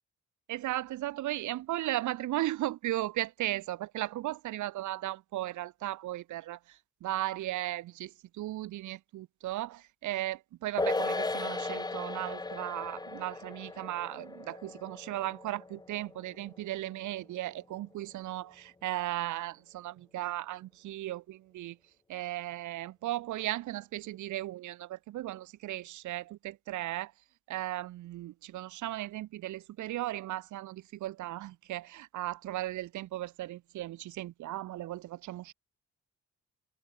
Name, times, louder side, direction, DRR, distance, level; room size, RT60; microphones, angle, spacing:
voice 1, 0.5-21.8 22.1-27.1 27.5-35.5, right 15 dB, 75° right, 0.9 m, -36 dB
sound 1, 10.8-17.4 17.7-17.8, left 3 dB, 15° left, 0.9 m, -37 dB
cardioid pair, 90°, 30 cm